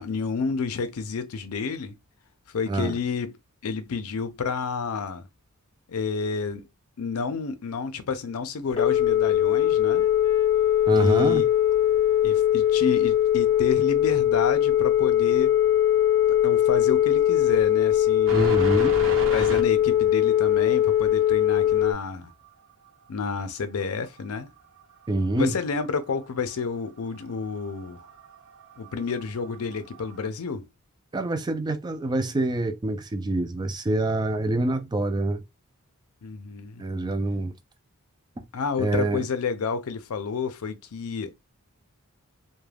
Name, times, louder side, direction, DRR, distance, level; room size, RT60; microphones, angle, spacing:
voice 1, 0.0-2.0 2.5-3.3 3.6-5.2 5.9-6.6 7.0-10.1 10.9-11.4 12.2-15.6 16.4-18.5 19.3-22.3 23.1-24.5 25.4-28.0 28.8-30.6 36.2-36.8 38.5-41.3, left 5 dB, 75° left, 0.5 m, -30 dB
Telephone, 8.7-21.9, left 11 dB, 25° left, 0.6 m, -21 dB
voice 2, 10.9-11.4 18.3-19.0 25.1-25.5 31.1-35.4 36.8-37.5 38.8-39.3, right 2 dB, 20° right, 0.3 m, -26 dB
sound 1, 18.3-19.6 22.4-22.5 24.3-24.4 24.8-26.6 27.1-30.3, right 2 dB, 60° right, 0.9 m, -35 dB
2.3 x 2.2 x 3.2 m
head